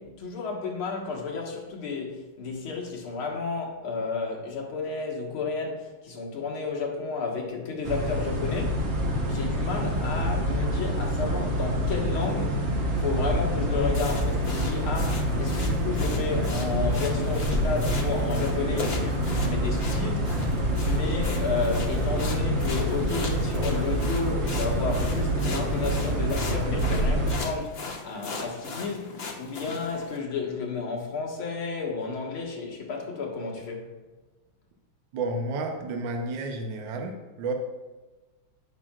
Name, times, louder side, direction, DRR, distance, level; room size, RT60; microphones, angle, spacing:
voice 1, 0.0-8.9 9.2-12.7 13.0-20.5 20.8-33.9, left 4 dB, 75° left, 2.4 m, -32 dB
sound 1, 7.8-27.4, equal, 45° right, 1.0 m, -26 dB
sound 2, 13.9-30.2, left 3 dB, 45° left, 0.8 m, -39 dB
voice 2, 35.1-37.5, right 2 dB, 65° right, 1.5 m, -31 dB
15.0 x 5.9 x 2.4 m
omnidirectional pair, 2.3 m